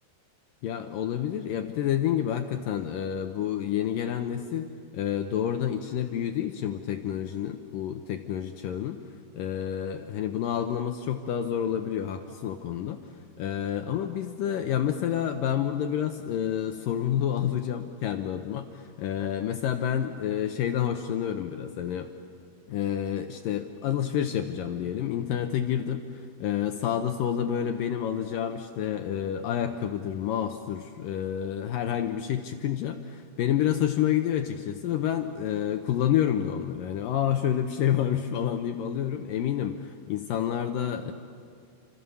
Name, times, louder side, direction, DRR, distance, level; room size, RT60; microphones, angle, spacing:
voice 1, 0.6-4.7 4.9-9.0 9.3-13.0 13.4-22.1 22.7-41.1, left 10 dB, 75° left, 6 dB, 2.3 m, -29 dB
28.5 x 26.0 x 7.0 m, 2.4 s
omnidirectional pair, 4.6 m